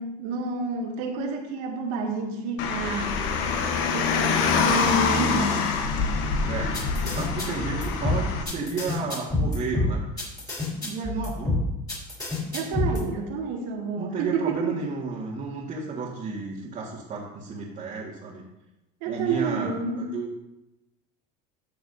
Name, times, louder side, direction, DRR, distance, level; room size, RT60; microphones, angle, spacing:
voice 1, 0.0-3.2 3.9-5.7 12.5-14.8 19.0-20.1, right 3 dB, 75° right, 1 dB, 2.0 m, -29 dB
Car, 2.6-8.4, left 5 dB, 70° left, 1.1 m, -25 dB
voice 2, 6.4-10.0 10.5-10.6 10.8-11.6 14.0-18.4 19.1-20.4, right 4 dB, 40° right, -5 dB, 1.8 m, -32 dB
sound 1, 6.7-13.0, left 2 dB, 20° left, 3.5 m, -27 dB
13.5 x 6.8 x 2.7 m, 0.94 s
supercardioid pair, 115°, 21 cm